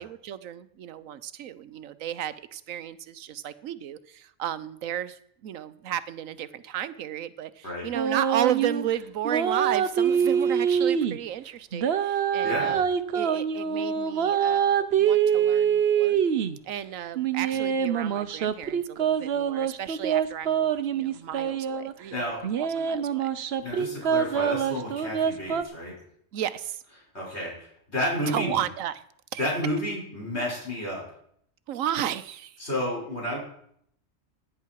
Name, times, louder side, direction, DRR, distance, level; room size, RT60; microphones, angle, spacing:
voice 1, 0.0-12.9 13.1-16.2 16.6-22.2 22.6-23.3 26.3-26.8 28.3-29.0 29.3-29.5 31.7-32.6, right 10 dB, 90° right, 15 dB, 1.1 m, -33 dB
sound 1, 8.0-8.9 9.3-11.2 11.7-16.6 17.2-21.9 22.4-25.6, right 8 dB, 55° right, 0.9 m, -25 dB
voice 2, 12.4-12.8 22.1-22.4 23.6-25.9 27.1-28.6 29.4-31.0 32.6-33.4, equal, 55° left, -3 dB, 6.1 m, -31 dB
16.5 x 10.0 x 4.7 m, 0.69 s
omnidirectional pair, 1.3 m